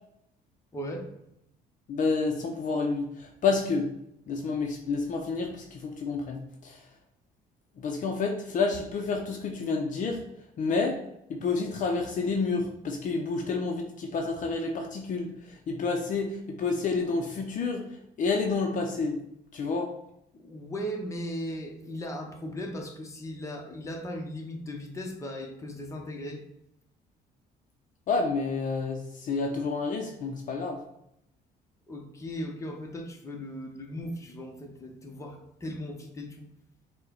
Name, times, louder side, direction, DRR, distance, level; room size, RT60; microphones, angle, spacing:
voice 1, 0.7-1.1 20.4-26.4 31.9-36.4, equal, 20° left, 1 dB, 0.8 m, -37 dB
voice 2, 1.9-3.9 4.3-6.8 7.8-10.2 10.6-11.0 11.3-17.8 18.2-19.2 19.5-19.9 28.1-30.8, left 4 dB, 50° left, 2 dB, 0.6 m, -29 dB
5.2 x 2.2 x 3.9 m, 0.78 s
cardioid pair, 110°, 17 cm